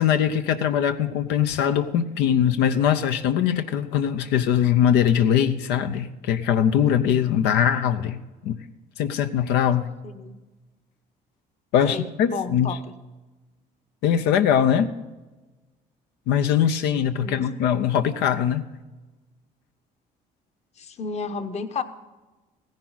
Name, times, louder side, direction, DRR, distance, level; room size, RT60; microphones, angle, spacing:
voice 1, 0.0-8.6 9.0-9.9 11.7-12.7 14.0-14.9 16.3-18.6, left 9 dB, 90° left, 8 dB, 0.7 m, -21 dB
voice 2, 10.0-10.4 11.8-12.9 17.2-17.6 20.8-21.8, left 5 dB, 40° left, 10 dB, 1.0 m, -32 dB
15.5 x 10.5 x 4.0 m, 1.2 s
cardioid pair, 110°, 17 cm